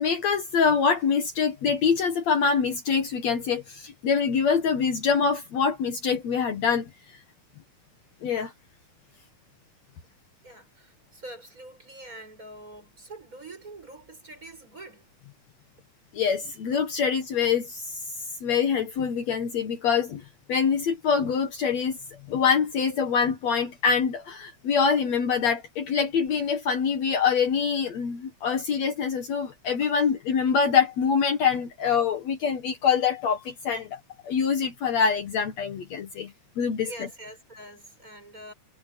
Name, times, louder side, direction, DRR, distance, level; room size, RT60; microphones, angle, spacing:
voice 1, 0.0-6.9 8.2-8.5 16.1-18.0 18.4-20.2 20.5-22.0 22.3-37.1, left 6 dB, 60° left, 2.6 m, -25 dB
voice 2, 10.4-15.1 36.8-38.5, right 2 dB, 25° right, 7.6 m, -44 dB
omnidirectional pair, 3.7 m